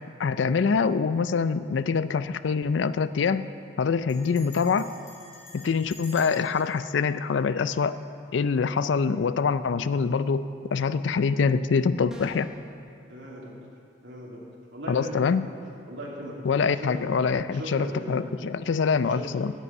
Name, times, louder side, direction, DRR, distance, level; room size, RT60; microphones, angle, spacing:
voice 1, 0.2-3.5 3.8-4.9 5.5-8.0 8.3-12.5 14.9-15.4 16.4-19.5, left 5 dB, 70° left, 14 dB, 0.4 m, -25 dB
Bell, 4.1-8.2, left 2 dB, 40° left, 2.9 m, -49 dB
sound 1, 12.1-12.6, right 1 dB, 5° right, 1.3 m, -44 dB
voice 2, 13.1-13.5 14.0-14.4 14.7-15.2 15.9-16.4 16.9-17.1 17.5-18.2 19.1-19.4, equal, 75° right, -4 dB, 2.7 m, -38 dB
9.5 x 8.3 x 8.6 m, 2.5 s
head